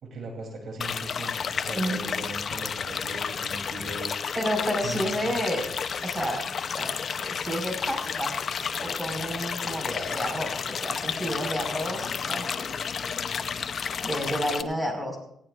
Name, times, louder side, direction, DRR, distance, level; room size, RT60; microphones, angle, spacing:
voice 1, 0.0-4.2 4.8-5.0, right 2 dB, 60° right, 1 dB, 3.3 m, -39 dB
sound 1, 0.8-14.6, left 6 dB, 50° left, 0.8 m, -31 dB
voice 2, 4.4-5.7 6.0-6.5 6.8-8.4 8.8-12.7 14.0-15.2, equal, 10° right, 2 dB, 5.3 m, -31 dB
19.0 x 17.5 x 2.6 m, 0.74 s
cardioid pair, 90°, 0 cm